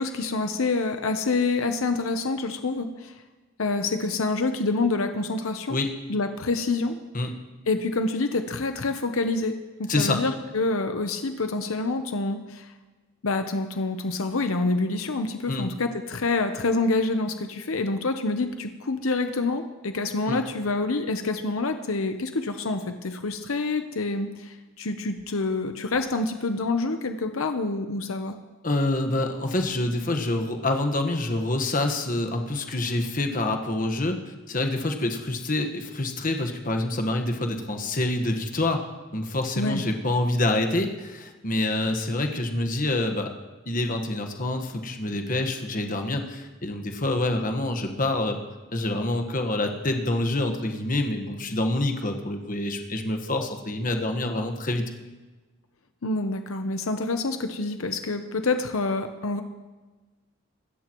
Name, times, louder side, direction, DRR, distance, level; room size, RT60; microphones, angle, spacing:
voice 1, 0.0-3.1 3.6-5.8 6.1-7.0 7.7-12.7 13.2-28.4 39.6-39.8 56.0-59.4, left 3 dB, 80° left, 7 dB, 0.9 m, -27 dB
voice 2, 9.9-10.2 15.5-15.7 20.3-20.4 28.6-34.2 34.5-38.8 39.1-43.3 43.6-48.4 48.7-54.8, left 2 dB, 40° left, 5 dB, 1.4 m, -26 dB
25.0 x 13.5 x 3.1 m, 1.3 s
head